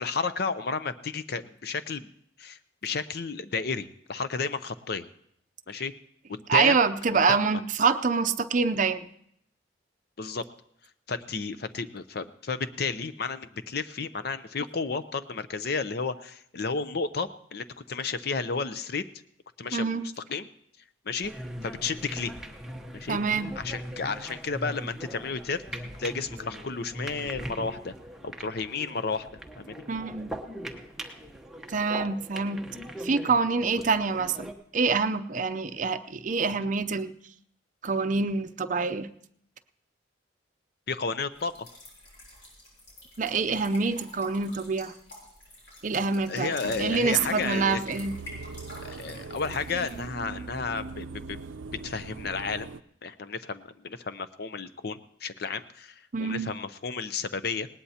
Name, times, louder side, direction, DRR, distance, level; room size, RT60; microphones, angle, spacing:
voice 1, 0.0-2.1 2.4-5.1 5.7-5.9 6.3-6.8 7.3-7.6 10.2-10.4 11.1-19.0 19.6-20.0 20.3-20.5 21.1-21.3 21.6-22.3 22.9-23.2 23.6-27.9 28.2-29.3 29.6-29.8 36.6-36.7 40.9-41.5 46.3-47.8 48.8-51.4 51.8-52.7 53.0-57.7, left 4 dB, 55° left, 12 dB, 0.6 m, -32 dB
voice 2, 6.5-9.1 19.7-20.0 23.1-23.5 29.9-30.3 31.7-32.7 33.0-37.1 37.8-39.1 43.2-44.9 45.8-48.2 56.1-56.5, right 4 dB, 45° right, 9 dB, 0.6 m, -26 dB
sound 1, 21.2-34.5, right 1 dB, ahead, 0.9 m, -40 dB
sound 2, 41.3-50.0, left 1 dB, 85° left, 7.9 m, -48 dB
sound 3, 46.6-52.8, right 3 dB, 85° right, 0.5 m, -40 dB
19.5 x 18.5 x 2.8 m, 0.71 s
head